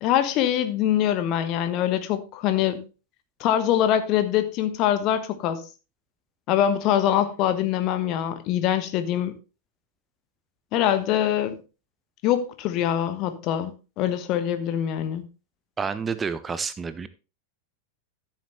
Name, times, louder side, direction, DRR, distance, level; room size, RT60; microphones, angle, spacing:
voice 1, 0.0-2.9 3.4-5.6 6.5-9.3 10.7-11.6 12.2-15.2, left 10 dB, 40° left, 1.3 m, -24 dB
voice 2, 15.8-17.1, right 5 dB, 15° right, 0.6 m, -29 dB
13.0 x 7.2 x 3.2 m
figure-of-eight pair, 90°, 0 cm